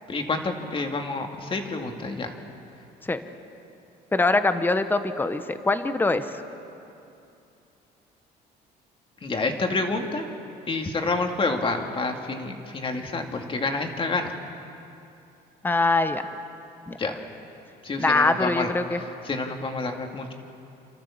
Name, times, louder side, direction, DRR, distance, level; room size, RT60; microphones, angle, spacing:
voice 1, 0.1-2.3 9.2-10.3 10.7-14.4 17.0-17.2 17.8-18.7 19.3-20.3, left 3 dB, 30° left, 4 dB, 2.2 m, -28 dB
voice 2, 4.1-6.2 15.6-16.3 16.9-17.0 18.0-19.0, left 2 dB, 10° left, 10 dB, 0.9 m, -23 dB
29.0 x 13.0 x 7.2 m, 2.7 s
cardioid pair, 110°, 17 cm